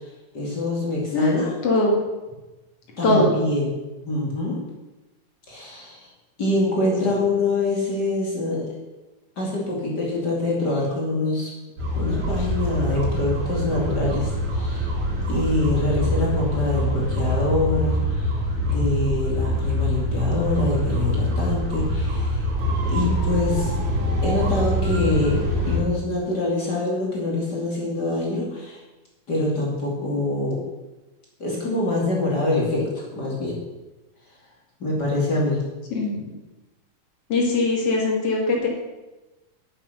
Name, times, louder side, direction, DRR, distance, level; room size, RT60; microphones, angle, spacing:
voice 1, 0.3-1.6 3.0-3.7 4.0-4.6 5.5-6.1 6.4-8.7 9.4-11.5 11.9-14.9 15.3-18.3 18.6-22.5 22.9-23.7 24.2-25.4 25.7-28.8 29.3-30.6 31.4-33.5 34.8-35.6, left 2 dB, 35° left, -3 dB, 2.9 m, -25 dB
voice 2, 1.6-2.0 3.0-3.3 7.0-7.2 35.9-36.2 37.3-38.7, left 2 dB, 50° left, -1 dB, 3.2 m, -21 dB
sound 1, 11.8-25.8, equal, 70° right, 4.9 m, -24 dB
9.3 x 8.2 x 6.7 m, 1.1 s
omnidirectional pair, 3.5 m